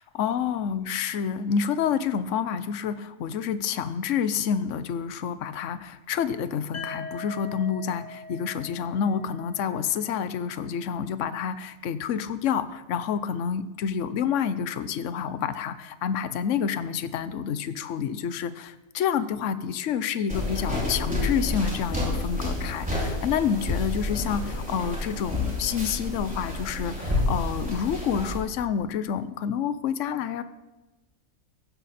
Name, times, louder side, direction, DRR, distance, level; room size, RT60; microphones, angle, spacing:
voice 1, 0.0-30.4, left 7 dB, 60° left, 13 dB, 1.0 m, -28 dB
sound 1, 6.7-10.6, left 3 dB, 35° left, 1.0 m, -42 dB
sound 2, 20.3-28.4, left 2 dB, 5° right, 5.0 m, -29 dB
16.5 x 15.0 x 4.3 m, 1.1 s
omnidirectional pair, 1.6 m